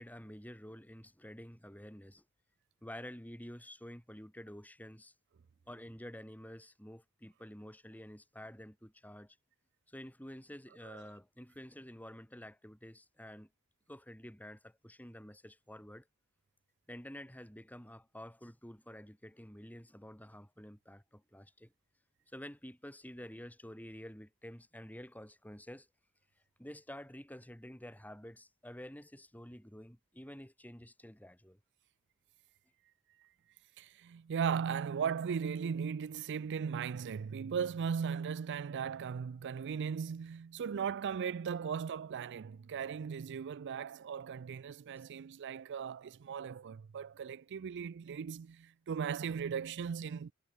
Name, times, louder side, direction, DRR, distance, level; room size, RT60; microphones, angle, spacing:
voice 1, 0.0-2.2 2.8-5.1 5.7-9.4 9.9-13.5 13.9-16.1 16.9-21.7 22.3-25.9 26.6-31.6, equal, 10° left, 6.0 m, -50 dB
voice 2, 33.8-50.3, right 7 dB, 55° right, 0.4 m, -37 dB
head